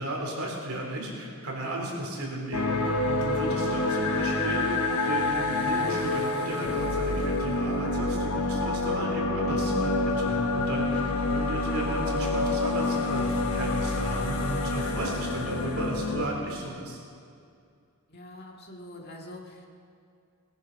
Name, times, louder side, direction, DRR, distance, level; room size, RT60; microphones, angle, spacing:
voice 1, 0.0-4.8 5.0-17.0, right 1 dB, 75° right, -1 dB, 3.4 m, -34 dB
sound 1, 2.5-16.2, left 2 dB, 80° left, 1.3 m, -27 dB
voice 2, 3.3-3.7 18.1-19.7, left 1 dB, 50° left, 0 dB, 2.0 m, -45 dB
19.0 x 10.5 x 5.3 m, 2.3 s
head